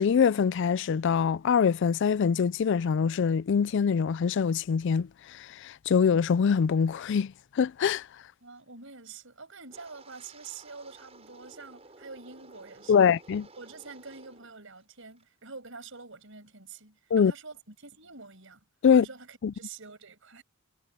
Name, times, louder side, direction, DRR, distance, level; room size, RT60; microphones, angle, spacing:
voice 1, 0.0-8.1 12.9-13.5 17.1-17.3 18.8-19.0 19.4-19.5, left 6 dB, 55° left, 0.4 m, -24 dB
voice 2, 8.4-13.1 13.6-18.6 18.9-20.4, right 4 dB, 65° right, 7.7 m, -46 dB
Wind, 9.7-14.5 14.8-15.2 15.7-16.0, right 3 dB, 30° right, 6.6 m, -54 dB
head